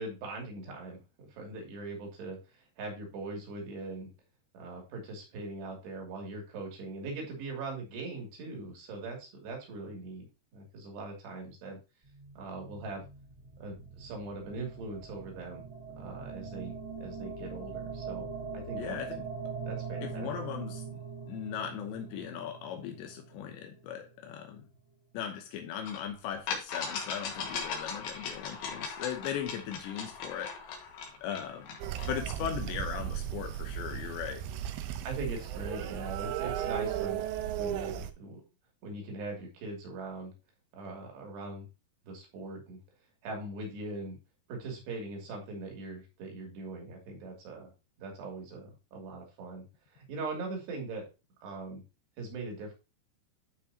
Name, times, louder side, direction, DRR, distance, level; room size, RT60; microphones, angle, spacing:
voice 1, 0.0-4.1 4.5-10.3 10.5-11.8 12.4-13.0 13.6-15.7 16.0-18.3 18.5-19.0 19.6-20.5 35.0-37.2 37.5-38.4 38.8-40.3 40.8-41.7 42.1-42.8 43.2-44.2 44.5-47.7 48.0-49.6 49.9-51.0 51.4-51.8 52.2-52.7, right 3 dB, 70° right, 4.7 m, -41 dB
sound 1, 12.0-24.3, right 5 dB, 20° right, 2.5 m, -42 dB
voice 2, 18.8-19.3 20.0-24.7 25.1-30.9 31.2-31.8 32.1-34.4, left 9 dB, 80° left, 3.2 m, -38 dB
sound 2, 25.9-26.0 26.5-32.2, left 5 dB, 65° left, 3.2 m, -38 dB
sound 3, 31.8-38.1, right 11 dB, 85° right, 3.0 m, -35 dB
12.0 x 5.6 x 2.8 m
omnidirectional pair, 5.1 m